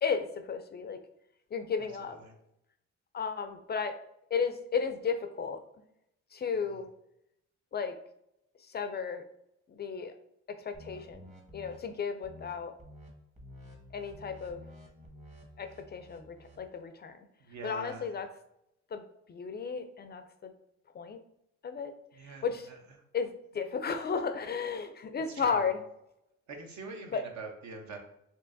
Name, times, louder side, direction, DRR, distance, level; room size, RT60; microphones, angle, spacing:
voice 1, 0.0-1.0 1.5-2.2 3.1-4.0 4.3-5.6 6.3-6.9 7.7-8.0 8.6-9.2 9.7-10.1 10.5-12.8 13.9-14.6 15.6-17.2 17.6-18.3 18.9-19.0 19.3-20.5 20.9-21.2 21.6-21.9 22.2-22.7 23.1-25.8 27.1-27.2, left 6 dB, 35° left, 8 dB, 0.4 m, -34 dB
voice 2, 2.0-2.3 6.5-6.8 17.4-18.1 22.1-22.8 25.3-25.6 26.5-28.0, right 3 dB, 65° right, 3 dB, 0.9 m, -44 dB
sound 1, 10.7-11.8 12.2-12.5 12.8-13.1 13.3-16.6, left 1 dB, 25° right, 1.0 m, -51 dB
4.5 x 2.7 x 2.6 m, 0.79 s
cardioid pair, 90°, 30 cm